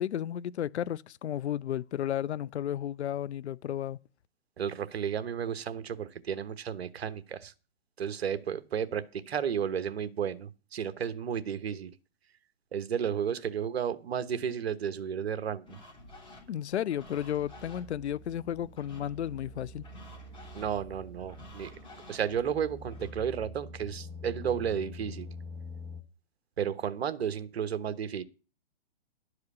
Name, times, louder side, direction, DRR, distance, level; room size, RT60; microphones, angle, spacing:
voice 1, 0.0-4.0 16.5-19.8, left 10 dB, 85° left, 0.5 m, -33 dB
voice 2, 4.6-7.5 8.0-11.9 12.7-15.8 20.5-21.7 22.1-25.3 26.6-28.2, right 8 dB, 70° right, 1.1 m, -33 dB
sound 1, 15.7-23.1, left 2 dB, 15° left, 3.4 m, -53 dB
sound 2, 17.2-26.0, left 1 dB, 15° right, 1.0 m, -46 dB
12.0 x 4.9 x 8.3 m
hypercardioid pair, 140°, 32 cm